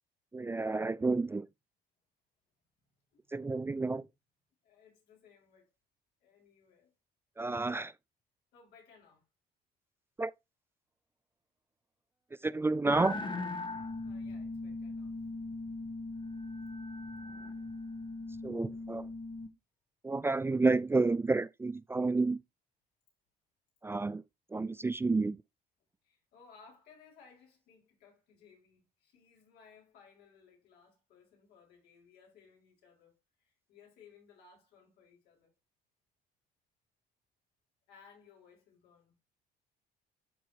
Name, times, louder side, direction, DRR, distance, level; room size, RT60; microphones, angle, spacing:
voice 1, 0.3-1.5 3.3-4.1 7.4-7.9 10.2-10.3 12.4-13.2 18.4-19.1 20.0-22.4 23.8-24.2 24.5-25.4, right 3 dB, 15° right, 0.3 m, -30 dB
voice 2, 3.1-4.0 4.6-5.7 6.2-6.9 8.5-9.2 14.0-15.2 17.5-17.7 26.0-35.5 37.9-39.2, left 6 dB, 80° left, 5.3 m, -61 dB
sound 1, 12.8-19.5, left 2 dB, 30° left, 1.1 m, -40 dB
12.5 x 4.6 x 2.9 m
cardioid pair, 110°, 17 cm